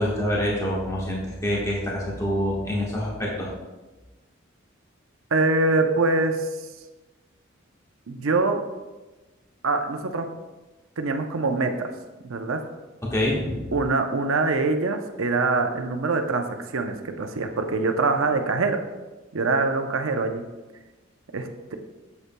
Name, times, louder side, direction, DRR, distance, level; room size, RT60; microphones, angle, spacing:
voice 1, 0.0-3.5 13.1-13.7, left 1 dB, 15° left, -5 dB, 1.3 m, -26 dB
voice 2, 5.3-6.5 8.1-8.6 9.6-10.3 11.0-11.9 12.2-12.6 13.7-18.8 19.3-20.4 21.3-21.8, right 3 dB, 90° right, 6 dB, 0.7 m, -24 dB
8.0 x 7.1 x 2.2 m, 1.2 s
head